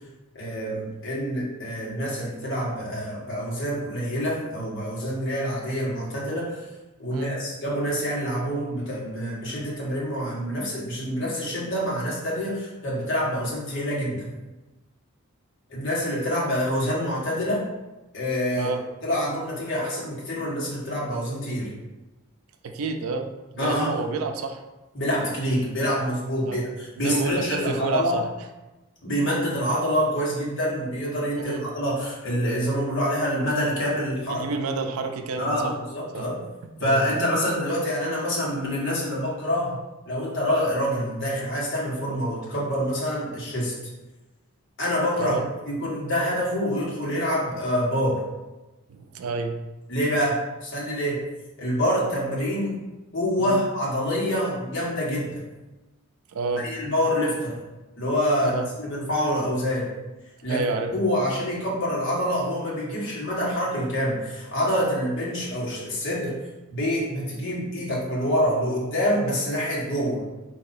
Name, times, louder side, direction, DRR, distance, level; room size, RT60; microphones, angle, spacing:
voice 1, 0.3-6.6 7.0-14.3 15.7-17.6 18.1-18.7 19.0-21.7 23.6-23.9 24.9-28.2 29.0-34.4 35.4-36.4 36.8-39.8 40.1-43.7 44.8-45.4 45.7-48.2 49.9-51.2 51.6-52.7 53.1-55.4 56.6-57.6 58.0-59.9 60.4-60.6 60.9-66.4 66.7-70.2, equal, 55° left, -5 dB, 1.5 m, -26 dB
voice 2, 18.6-18.9 22.6-24.6 26.4-26.6 27.0-28.3 31.4-31.7 34.3-35.8 36.1-36.3 36.6-37.0 45.2-45.5 48.9-49.6 53.4-53.6 56.3-56.7 58.5-58.7 60.5-61.0, right 4 dB, 80° right, 7 dB, 0.4 m, -29 dB
4.3 x 2.8 x 4.1 m, 1.1 s
head